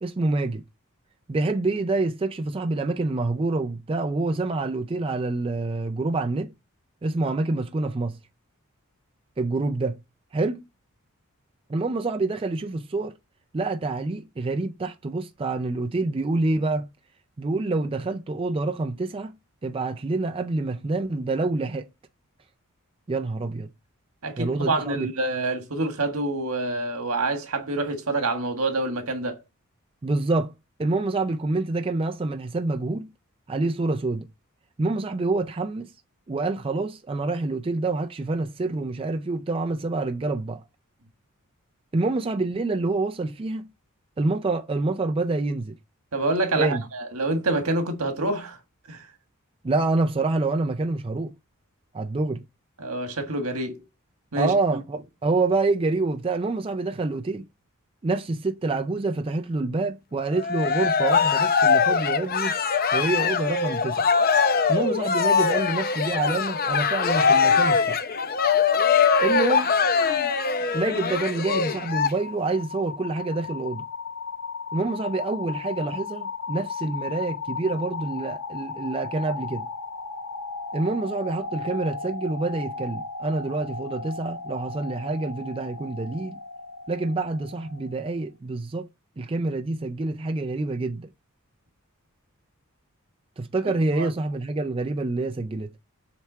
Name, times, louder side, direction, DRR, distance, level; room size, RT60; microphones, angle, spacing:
voice 1, 0.0-0.6 1.3-6.5 7.0-8.2 9.4-10.0 10.3-10.6 11.7-13.1 13.5-16.9 17.4-19.3 19.6-21.9 23.1-23.7 24.4-25.1 30.0-30.5 30.8-33.1 33.5-34.3 34.8-35.9 36.3-40.6 41.9-43.7 44.2-45.8 46.5-46.8 49.6-51.3 51.9-52.4 54.4-57.5 58.0-62.5 62.9-64.1 64.7-68.1 69.2-69.7 70.7-73.9 74.7-79.7 80.7-86.4 86.9-88.9 89.2-91.1 93.4-95.7, right 3 dB, 25° right, 0.4 m, -27 dB
voice 2, 24.2-29.4 46.1-48.6 48.9-49.0 52.8-53.8 54.3-54.5 93.6-93.7 94.0-94.1, right 2 dB, 70° right, 1.5 m, -27 dB
Cheering, 60.3-72.1, left 5 dB, 40° left, 0.7 m, -22 dB
sound 1, 70.3-88.1, left 4 dB, 90° left, 1.0 m, -36 dB
7.6 x 3.5 x 5.5 m
head